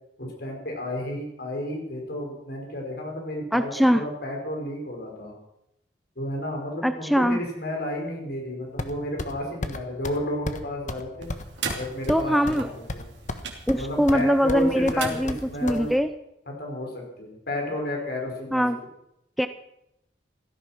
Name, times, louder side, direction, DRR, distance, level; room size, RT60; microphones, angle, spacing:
voice 1, 0.2-5.3 6.2-11.3 11.8-13.1 13.7-15.9 16.5-18.6, left 1 dB, 60° left, 0 dB, 5.6 m, -32 dB
voice 2, 3.5-4.0 6.8-7.4 12.1-12.7 13.7-16.1 18.5-18.8 19.4-19.5, equal, ahead, 10 dB, 0.5 m, -22 dB
sound 1, 8.8-9.3 9.6-9.8 10.0-10.2 10.5-10.6 10.9-11.0 11.3-12.6 12.9-13.4 13.7-14.2 14.5-15.8, left 2 dB, 45° left, 1.3 m, -33 dB
sound 2, 11.2-16.0, right 5 dB, 75° right, 3.0 m, -38 dB
16.5 x 13.5 x 6.1 m, 0.82 s
head